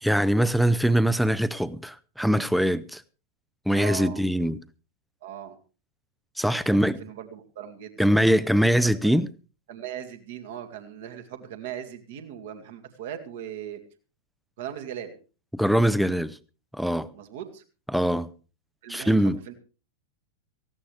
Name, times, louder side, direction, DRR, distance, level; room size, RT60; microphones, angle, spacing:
voice 1, 0.0-3.0 3.7-4.6 6.4-7.0 8.0-9.3 15.5-16.4 16.7-17.1 17.9-18.3 18.9-19.4, equal, ahead, 0.7 m, -22 dB
voice 2, 3.7-4.3 5.2-5.6 6.4-6.6 7.0-8.1 9.0-9.1 9.7-13.8 14.6-15.1 17.1-17.6 18.8-19.5, right 10 dB, 55° right, 2.2 m, -39 dB
18.5 x 16.0 x 3.3 m
figure-of-eight pair, 90°, 0 cm